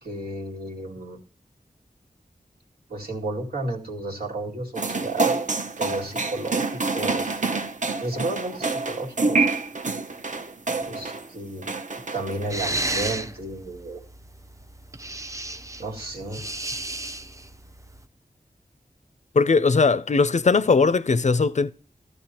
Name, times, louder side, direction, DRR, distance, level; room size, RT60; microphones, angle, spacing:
voice 1, 0.0-1.2 2.9-5.4 5.8-7.4 8.0-9.5 10.8-11.7 11.9-14.0 15.8-16.4, right 2 dB, 85° right, 2.4 m, -32 dB
sound 1, 4.7-11.3 11.6-12.6, right 3 dB, 50° right, 0.8 m, -27 dB
sound 2, 12.5-18.0, right 1 dB, 20° right, 0.6 m, -33 dB
voice 2, 19.3-21.7, left 4 dB, 50° left, 0.4 m, -19 dB
15.0 x 12.5 x 2.9 m
wide cardioid pair, 75°, 16 cm